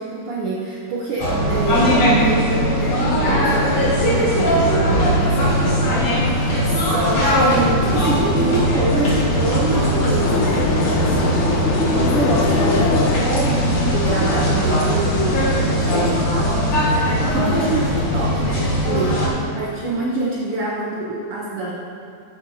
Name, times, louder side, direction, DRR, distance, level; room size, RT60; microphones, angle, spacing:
voice 1, 0.0-21.7, right 2 dB, 65° right, -4 dB, 1.5 m, -26 dB
sound 1, 1.2-19.3, equal, 60° left, 3.6 m, -19 dB
sound 2, 10.2-15.3, left 4 dB, 85° left, 2.2 m, -24 dB
13.5 x 10.5 x 2.8 m, 2.4 s
omnidirectional pair, 3.5 m